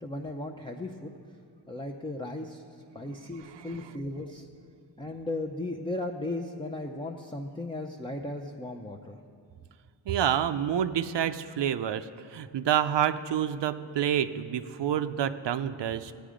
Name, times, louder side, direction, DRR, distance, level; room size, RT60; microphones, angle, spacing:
voice 1, 0.0-1.1 1.7-2.6 2.9-4.5 5.0-9.2, left 2 dB, 10° left, 2 dB, 0.6 m, -36 dB
voice 2, 3.2-4.0 10.1-16.1, right 9 dB, 80° right, 9 dB, 0.6 m, -28 dB
16.0 x 9.3 x 5.0 m, 2.2 s
wide cardioid pair, 140°, 42 cm